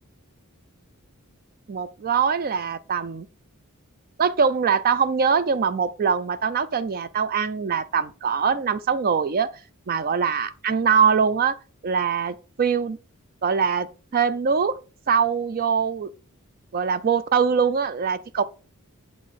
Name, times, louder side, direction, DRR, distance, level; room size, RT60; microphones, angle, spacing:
voice 1, 1.7-3.3 4.2-9.5 9.9-11.6 11.8-13.0 13.4-13.9 14.1-14.8 15.1-16.1 16.7-18.4, right 6 dB, 40° right, 0.4 m, -22 dB
8.5 x 4.1 x 5.1 m
head